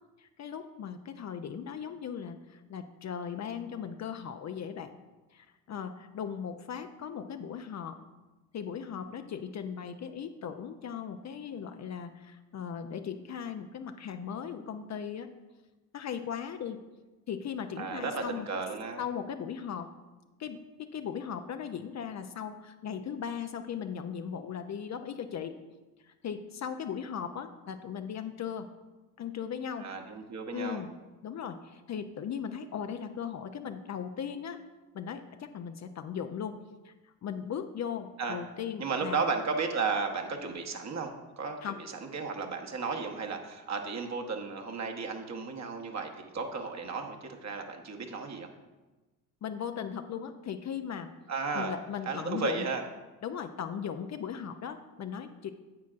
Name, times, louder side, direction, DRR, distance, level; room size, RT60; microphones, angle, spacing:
voice 1, 0.2-5.0 5.3-8.0 8.5-15.3 15.9-16.8 17.3-18.5 19.0-19.9 20.4-25.5 26.0-28.7 29.2-29.9 30.5-30.9 31.2-34.6 34.9-36.6 36.8-36.9 37.2-39.3 41.6-41.8 49.4-51.1 51.5-52.7 53.2-55.5, left 7 dB, 35° left, 7 dB, 0.6 m, -38 dB
voice 2, 17.8-19.0 29.8-30.8 38.2-38.4 38.8-48.5 51.3-51.7 52.0-52.8, right 4 dB, 35° right, 3 dB, 1.2 m, -34 dB
9.5 x 8.3 x 2.5 m, 1.1 s
hypercardioid pair, 55°, 45 cm